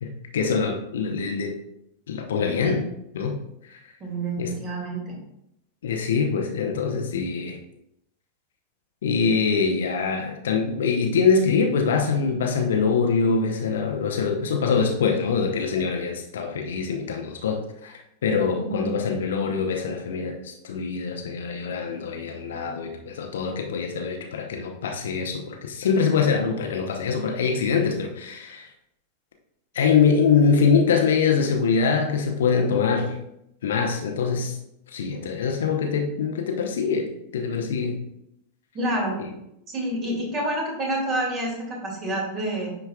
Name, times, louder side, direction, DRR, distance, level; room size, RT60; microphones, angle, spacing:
voice 1, 0.0-1.5 2.1-2.8 3.1-3.4 3.7-3.8 4.4-4.5 5.8-7.6 9.0-28.7 29.7-33.2 33.6-34.6 34.9-37.1 37.3-38.0, left 5 dB, 60° left, 2 dB, 0.8 m, -24 dB
voice 2, 4.0-5.2 18.7-18.8 38.7-39.2 39.7-42.8, right 1 dB, 30° right, -1 dB, 2.4 m, -28 dB
9.8 x 4.5 x 2.4 m, 0.80 s
figure-of-eight pair, 90°, 0 cm